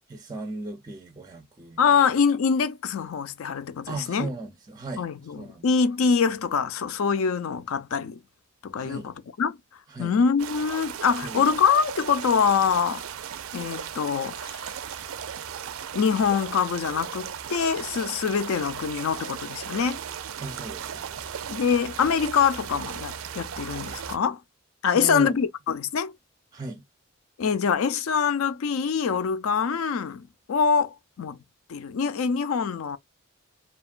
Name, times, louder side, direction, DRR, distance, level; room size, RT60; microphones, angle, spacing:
voice 1, 0.1-2.0 3.9-5.1 5.4-5.7 8.8-9.1 9.9-10.1 11.2-11.5 20.4-21.4 24.9-25.4 26.5-26.8, right 2 dB, 20° right, 0.4 m, -37 dB
voice 2, 1.8-4.3 5.0-8.2 8.6-9.6 10.0-13.0 13.5-14.7 15.9-20.0 21.5-24.4 24.8-26.1 27.4-31.4 31.7-33.0, left 6 dB, 80° left, 0.4 m, -24 dB
sound 1, 10.4-24.2, right 8 dB, 80° right, 0.4 m, -36 dB
2.8 x 2.2 x 2.4 m
head